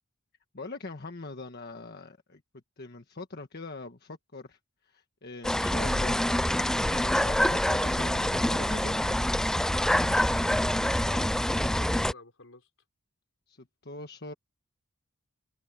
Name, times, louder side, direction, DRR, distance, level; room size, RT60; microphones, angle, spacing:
voice 1, 0.5-2.4 2.8-6.2 6.9-9.2 13.5-14.3, left 3 dB, 50° left, 1.5 m, -42 dB
sound 1, 5.4-12.1, left 1 dB, 5° left, 0.3 m, -26 dB
voice 2, 10.5-12.7, left 2 dB, 70° left, 4.5 m, -52 dB
open air
head